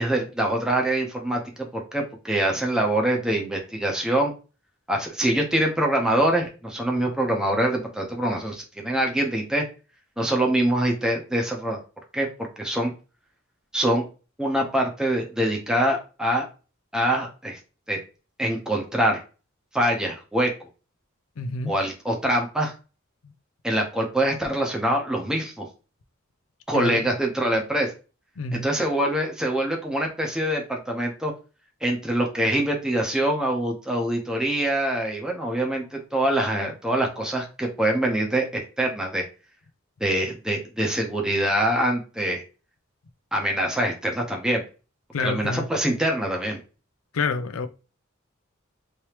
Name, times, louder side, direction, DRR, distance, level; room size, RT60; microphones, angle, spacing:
voice 1, 0.0-4.3 4.9-9.6 10.2-11.8 12.1-12.3 12.6-12.9 13.7-14.0 14.4-16.4 16.9-17.6 17.9-18.0 18.4-19.2 19.7-20.5 21.7-22.7 23.6-25.7 26.7-27.9 28.5-31.3 31.8-39.2 40.0-42.4 43.3-44.6 45.2-46.6, right 1 dB, 5° right, 0.8 m, -24 dB
voice 2, 21.4-21.7 26.7-27.1 28.4-28.7 45.1-45.7 47.1-47.7, left 3 dB, 90° left, 0.5 m, -28 dB
3.3 x 3.0 x 2.9 m
head